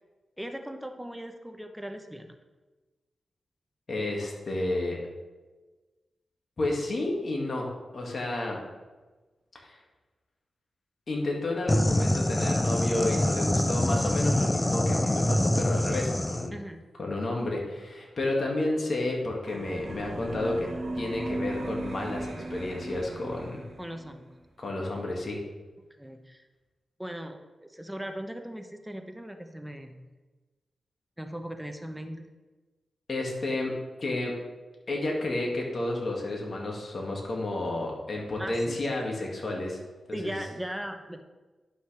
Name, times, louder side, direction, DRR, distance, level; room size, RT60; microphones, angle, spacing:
voice 1, 0.4-2.4 16.5-16.9 23.8-24.3 26.0-26.4 27.0-30.1 31.2-32.3 38.4-39.1 40.1-41.2, equal, 5° right, 6 dB, 0.9 m, -39 dB
voice 2, 3.9-5.0 6.6-8.6 9.6-9.8 11.1-16.5 17.0-20.7 21.0-23.6 24.6-25.4 33.1-33.7 34.0-34.3 34.9-39.8 40.2-40.4, left 2 dB, 55° left, -1 dB, 2.1 m, -31 dB
sound 1, 11.7-16.5, left 1 dB, 15° left, 0.5 m, -25 dB
sound 2, 19.5-24.1, right 2 dB, 55° right, 1.1 m, -37 dB
11.0 x 6.1 x 3.4 m, 1.2 s
cardioid pair, 55°, 0 cm